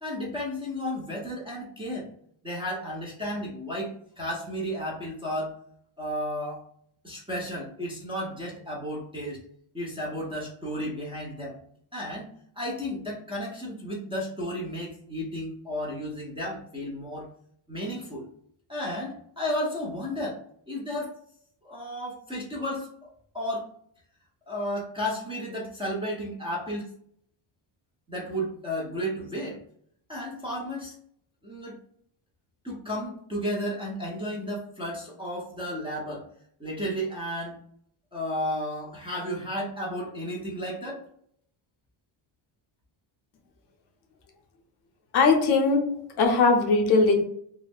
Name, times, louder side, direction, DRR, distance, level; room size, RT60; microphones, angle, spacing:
voice 1, 0.0-2.1 2.4-5.6 6.0-6.6 7.0-9.4 9.7-11.6 11.9-12.3 12.6-17.3 17.7-18.3 18.7-21.1 21.6-22.9 23.3-23.7 24.5-26.9 28.1-29.6 30.1-30.9 31.4-31.8 32.6-36.3 36.6-37.6 38.1-41.0, equal, 10° right, -5 dB, 0.4 m, -33 dB
voice 2, 45.1-47.2, left 4 dB, 55° left, 4 dB, 0.6 m, -20 dB
2.4 x 2.0 x 3.4 m, 0.66 s
cardioid pair, 145°, 50 cm